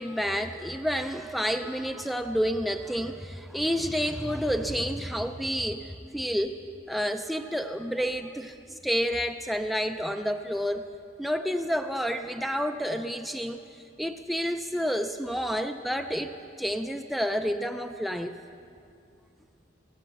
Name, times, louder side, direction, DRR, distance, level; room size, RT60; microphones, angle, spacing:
voice 1, 0.0-6.6 6.9-10.8 11.2-13.6 14.0-16.3 16.6-18.4, equal, ahead, 6 dB, 0.3 m, -29 dB
17.5 x 7.8 x 7.8 m, 2.5 s
head